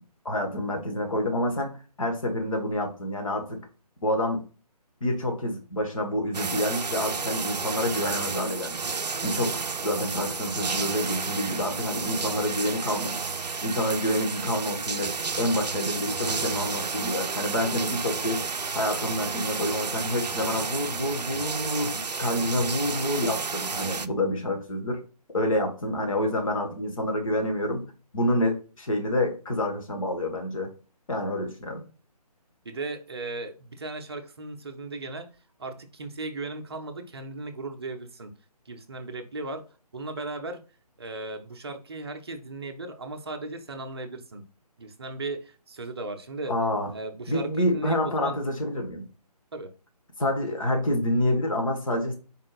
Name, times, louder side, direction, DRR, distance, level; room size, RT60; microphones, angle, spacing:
voice 1, 0.2-1.7 2.0-3.6 4.0-4.4 5.0-8.8 9.2-9.6 9.8-13.3 13.6-15.1 15.4-18.4 18.7-25.0 25.3-30.7 31.1-31.8 46.5-46.9 47.3-49.0 50.2-52.1, left 1 dB, 55° left, 1.4 m, -28 dB
sound 1, 6.3-24.1, right 4 dB, 85° right, 0.4 m, -31 dB
voice 2, 32.6-35.3 35.6-38.3 38.7-39.7 39.9-40.6 41.0-44.5 44.8-46.6 46.9-48.4 49.5-49.7, right 2 dB, 40° right, 0.6 m, -36 dB
4.3 x 3.6 x 2.4 m
figure-of-eight pair, 150°, 21 cm